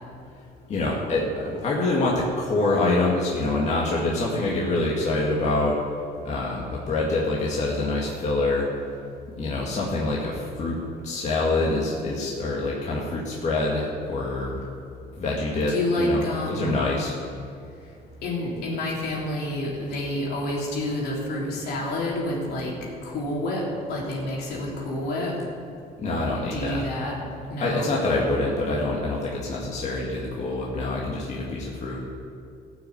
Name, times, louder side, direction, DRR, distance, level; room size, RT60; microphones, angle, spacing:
voice 1, 0.7-5.8 6.2-8.7 9.4-10.8 11.0-14.6 15.2-16.2 16.5-17.2 26.0-26.8 27.6-32.0, left 2 dB, 45° left, -4 dB, 2.0 m, -25 dB
voice 2, 15.7-16.8 18.2-22.7 23.0-25.3 26.4-27.2 27.5-27.9, left 1 dB, 75° left, -3 dB, 3.5 m, -28 dB
15.0 x 6.4 x 8.0 m, 2.4 s
cardioid pair, 110°, 17 cm